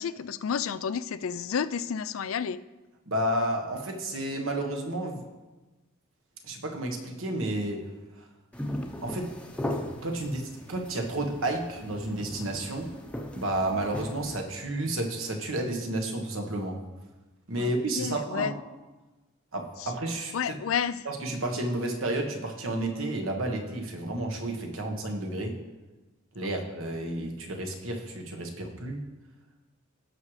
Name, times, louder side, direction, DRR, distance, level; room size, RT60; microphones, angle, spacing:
voice 1, 0.0-2.6 17.6-18.5 19.8-19.9 20.3-21.1 26.4-26.5, left 7 dB, 70° left, 13 dB, 0.4 m, -31 dB
voice 2, 3.1-5.2 6.4-7.9 8.2-8.3 9.0-9.4 10.0-12.9 13.3-16.8 17.5-18.5 19.5-20.3 21.0-25.6 26.3-29.1, right 1 dB, 70° right, 2 dB, 1.4 m, -31 dB
sound 1, 8.5-14.4, left 1 dB, 5° left, 0.8 m, -38 dB
17.5 x 6.2 x 3.3 m, 1.1 s
head